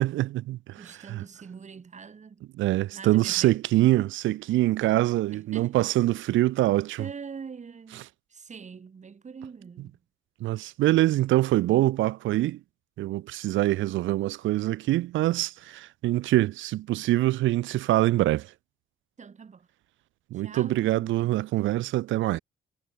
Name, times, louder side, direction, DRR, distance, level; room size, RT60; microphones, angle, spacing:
voice 1, 0.0-1.2 2.6-7.0 10.4-12.6 13.0-18.5 20.3-22.4, right 16 dB, 75° right, 0.5 m, -24 dB
voice 2, 0.8-2.4 2.9-3.6 5.3-5.8 7.0-8.0 8.3-10.0 19.2-19.7 20.3-21.4, right 6 dB, 35° right, 2.1 m, -43 dB
cardioid pair, 90°, 20 cm